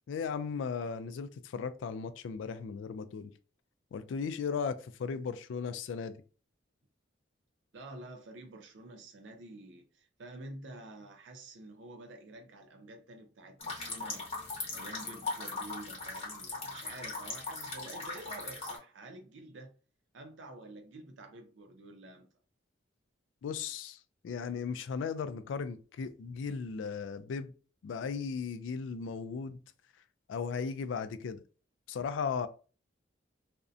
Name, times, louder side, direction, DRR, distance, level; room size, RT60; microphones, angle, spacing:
voice 1, 0.1-3.3 3.9-6.2 23.4-24.0 24.2-27.5 27.8-29.6 30.3-31.4 31.9-32.5, left 5 dB, 85° left, 0.3 m, -36 dB
voice 2, 7.7-14.3 14.7-19.7 20.1-22.3, right 2 dB, 75° right, 0.5 m, -49 dB
sound 1, 13.6-18.8, left 3 dB, 35° left, 0.9 m, -39 dB
2.6 x 2.1 x 2.4 m
head